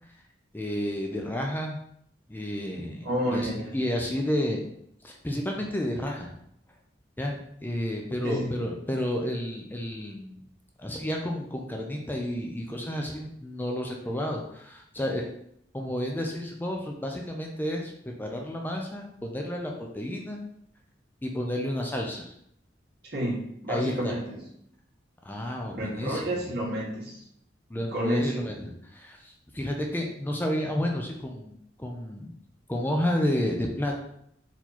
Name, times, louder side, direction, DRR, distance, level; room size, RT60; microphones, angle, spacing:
voice 1, 0.5-1.8 2.3-4.7 5.0-6.3 7.2-10.4 10.8-15.3 15.7-17.9 18.2-20.4 21.2-22.3 23.7-24.2 25.2-26.4 27.7-32.3 32.7-34.0, left 1 dB, 10° left, 1 dB, 0.5 m, -31 dB
voice 2, 3.0-3.7 8.2-8.5 23.1-24.4 25.7-27.2 27.7-28.4, equal, 60° right, -6 dB, 1.9 m, -30 dB
4.4 x 2.9 x 4.1 m, 0.72 s
head